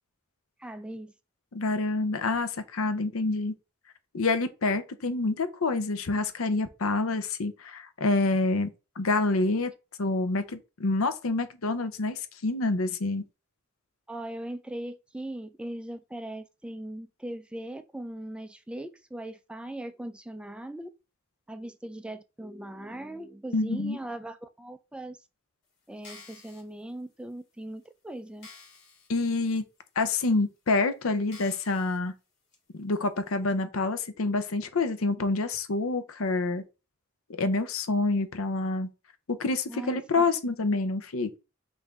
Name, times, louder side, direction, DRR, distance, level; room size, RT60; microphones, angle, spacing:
voice 1, 0.6-1.1 14.1-20.9 21.5-25.2 25.9-28.5 39.7-40.3, right 1 dB, 5° right, 0.3 m, -39 dB
voice 2, 1.5-3.5 4.1-8.7 9.0-9.7 10.0-13.2 23.5-24.0 29.1-29.6 30.0-32.1 32.7-36.6 37.4-38.9 39.3-41.4, left 3 dB, 75° left, 0.6 m, -27 dB
sound 1, 25.9-26.6 27.3-27.4 27.9-28.0 28.4-29.1 29.5-29.6 30.4-30.5 31.3-32.0 32.5-32.6, left 4 dB, 55° left, 1.7 m, -50 dB
5.7 x 2.6 x 3.4 m
head